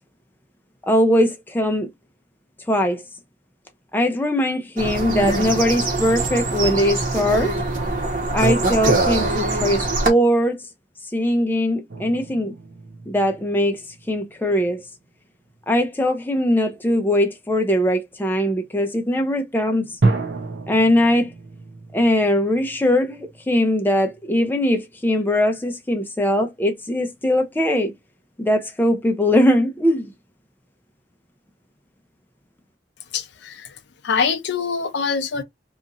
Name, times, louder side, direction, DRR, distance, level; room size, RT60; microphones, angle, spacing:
voice 1, 0.8-1.9 2.7-3.0 3.9-7.5 8.3-10.6 11.1-12.5 13.1-14.8 15.7-20.0 20.7-21.3 21.9-27.9 28.4-30.1, left 1 dB, 10° left, 0.5 m, -20 dB
sound 1, 4.8-10.1, right 2 dB, 50° right, 1.0 m, -23 dB
sound 2, 11.9-14.9 15.4-15.7 20.0-24.3, right 3 dB, 70° right, 0.7 m, -30 dB
voice 2, 33.1-33.7 34.0-35.4, left 5 dB, 70° left, 0.5 m, -24 dB
2.9 x 2.5 x 2.4 m
head